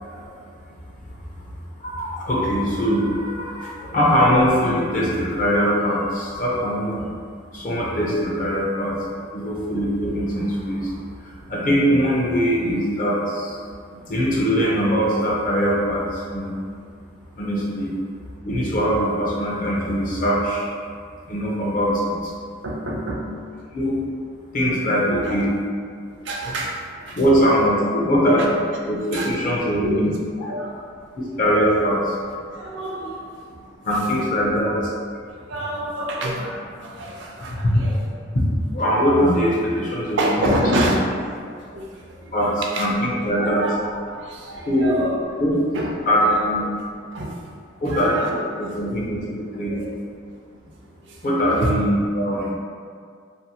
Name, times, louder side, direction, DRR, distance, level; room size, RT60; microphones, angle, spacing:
voice 1, 1.8-7.0 7.5-9.0 9.3-10.9 11.5-13.6 14.1-16.6 17.4-17.9 18.4-20.7 21.3-22.2 23.7-24.0 24.5-25.6 27.2-28.6 28.9-30.1 31.2-32.1 33.8-34.8 37.6-37.7 38.7-40.6 42.3-43.6 44.7-45.0 45.4-45.5 46.1-46.7 47.8-49.8 51.2-52.5, equal, 45° left, -5 dB, 0.5 m, -21 dB
voice 2, 22.6-23.2 25.2-25.4 26.2-26.8 27.1-27.2 29.1-29.3 29.8-30.1 30.4-30.8 32.5-33.3 35.5-38.1 40.0-41.1 41.7-41.9 42.2-42.9 43.4-45.4 45.7-45.9 46.4-46.5 47.1-47.3 47.9-48.3 49.5-50.0 51.6-51.7, right 1 dB, 65° right, -1 dB, 0.4 m, -27 dB
2.6 x 2.3 x 2.7 m, 2.1 s
head